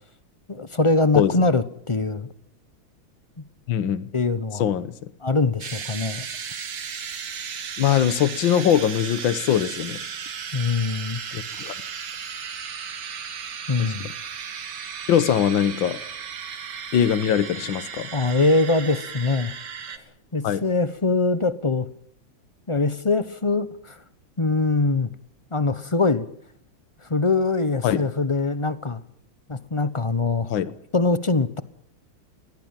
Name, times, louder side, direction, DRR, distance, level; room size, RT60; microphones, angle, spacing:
voice 1, 0.5-2.3 4.1-4.6 5.2-6.3 10.5-11.2 13.7-14.1 18.1-19.5 20.3-21.9 22.7-24.0 24.4-25.1 25.5-26.2 27.1-29.0 29.5-30.5 30.9-31.6, left 3 dB, 30° left, 14 dB, 0.5 m, -23 dB
voice 2, 1.2-1.5 3.7-4.1 4.6-4.9 7.8-10.0 11.3-11.7 13.8-13.9 15.1-16.0 16.9-18.1 20.4-20.6 27.8-28.0 30.5-30.7, left 9 dB, 75° left, 14 dB, 1.8 m, -22 dB
sound 1, 5.6-20.0, right 7 dB, 60° right, 2.1 m, -35 dB
21.5 x 18.0 x 9.0 m, 0.68 s
omnidirectional pair, 2.1 m